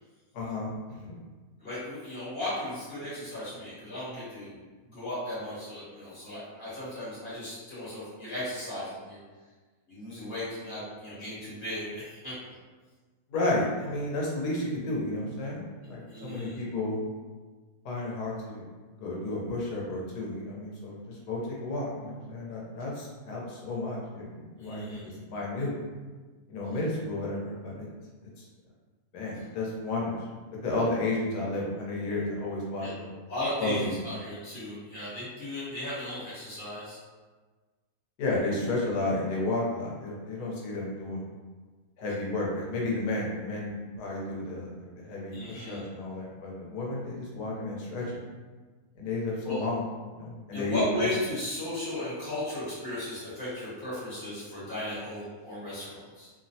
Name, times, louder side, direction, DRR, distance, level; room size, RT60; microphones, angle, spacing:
voice 1, 0.3-1.1 13.3-15.6 15.9-17.0 17.8-18.6 19.0-25.7 26.5-27.9 29.1-30.2 30.6-33.1 33.6-34.0 38.2-41.2 42.0-48.2 49.0-49.8 50.2-51.1, left 2 dB, 90° left, -3 dB, 1.3 m, -32 dB
voice 2, 1.6-4.5 4.8-9.2 9.9-12.3 16.1-16.6 24.6-25.2 32.8-32.9 33.3-37.0 45.3-45.8 49.4-49.6 50.5-56.3, left 1 dB, 45° left, -11 dB, 1.1 m, -36 dB
3.0 x 2.0 x 2.6 m, 1.4 s
omnidirectional pair, 1.7 m